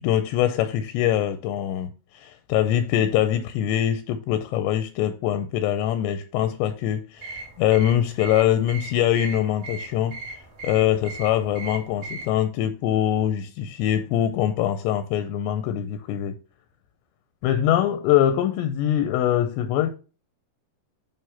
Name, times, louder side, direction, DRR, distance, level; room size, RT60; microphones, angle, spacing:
voice 1, 0.0-10.2 10.6-16.4 17.4-19.9, left 11 dB, 85° left, 2.6 m, -23 dB
sound 1, 7.2-12.3, right 3 dB, 50° right, 2.7 m, -38 dB
9.2 x 3.1 x 5.7 m
omnidirectional pair, 5.2 m